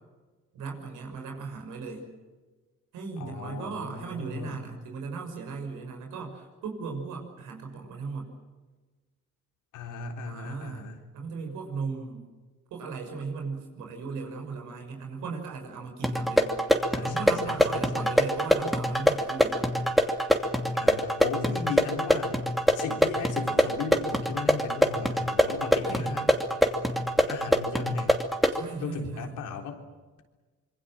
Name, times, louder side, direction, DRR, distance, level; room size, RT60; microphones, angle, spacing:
voice 1, 0.5-2.1 2.9-8.3 10.2-10.8 11.1-12.2 12.7-16.5 17.0-19.7 21.4-21.7 25.8-26.1 28.5-29.3, right 4 dB, 90° right, 3 dB, 6.4 m, -37 dB
voice 2, 3.2-4.7 9.7-11.1 16.9-18.1 20.8-22.4 22.7-26.3 27.2-28.2 28.8-29.8, left 5 dB, 85° left, 3 dB, 3.9 m, -37 dB
sound 1, 16.0-28.6, equal, ahead, 2.7 m, -25 dB
25.5 x 24.0 x 7.7 m, 1.3 s
cardioid pair, 90°, 30 cm